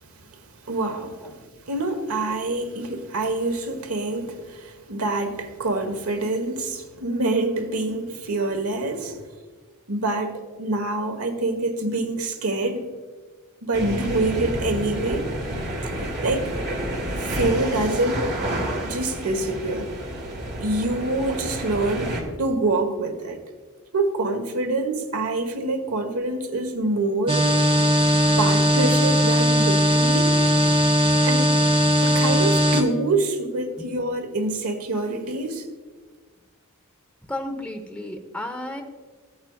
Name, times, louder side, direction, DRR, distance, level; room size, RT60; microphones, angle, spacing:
voice 1, 0.6-9.2 9.9-12.9 13.6-15.3 16.2-16.5 17.2-19.9 20.6-23.4 23.9-27.4 28.4-30.3 31.2-31.6 32.0-35.6, right 2 dB, 80° right, 1.2 m, -26 dB
sound 1, 13.7-22.2, right 1 dB, 50° right, 2.1 m, -29 dB
sound 2, 27.3-32.8, equal, 25° right, 1.1 m, -19 dB
voice 2, 37.3-38.8, left 1 dB, 5° left, 0.9 m, -33 dB
15.0 x 8.7 x 2.3 m
head